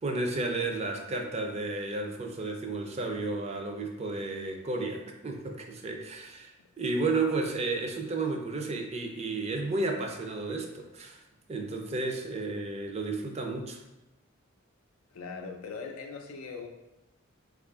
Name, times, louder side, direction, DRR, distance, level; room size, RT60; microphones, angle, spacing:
voice 1, 0.0-11.2 11.5-13.8, right 3 dB, 30° right, 3 dB, 0.4 m, -32 dB
voice 2, 15.1-16.7, left 4 dB, 90° left, 4 dB, 0.5 m, -40 dB
3.6 x 2.4 x 3.5 m, 0.98 s
head